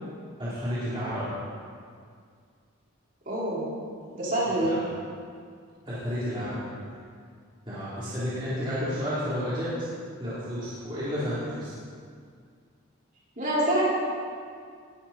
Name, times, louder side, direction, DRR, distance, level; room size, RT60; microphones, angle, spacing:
voice 1, 0.4-1.2 4.6-4.8 5.9-6.6 7.7-9.7 10.2-11.7, equal, 20° right, -12 dB, 3.9 m, -31 dB
voice 2, 3.2-3.7 4.1-4.7 13.4-13.9, right 1 dB, 35° right, -8 dB, 5.1 m, -25 dB
21.0 x 12.5 x 4.5 m, 2.1 s
head